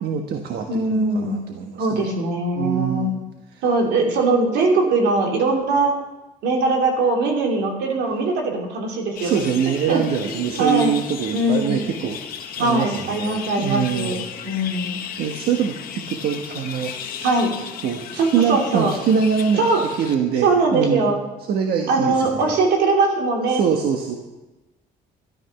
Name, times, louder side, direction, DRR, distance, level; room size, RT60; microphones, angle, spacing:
voice 1, 0.0-2.1 2.6-3.2 3.5-3.6 9.2-12.2 12.6-14.2 15.2-16.9 17.8-21.1 21.4-22.6 23.5-24.2, right 7 dB, 70° right, 4 dB, 1.4 m, -24 dB
voice 2, 0.7-1.4 1.8-3.1 3.6-6.0 6.4-9.4 9.9-11.0 11.3-11.8 12.6-14.2 14.4-15.0 17.2-17.5 18.2-18.9 19.6-19.8 20.4-21.2 21.9-23.6, right 3 dB, 85° right, 1 dB, 3.0 m, -21 dB
sound 1, 9.2-20.1, left 8 dB, 60° left, 1.6 m, -35 dB
13.5 x 12.0 x 5.9 m, 1.1 s
cardioid pair, 110°, 17 cm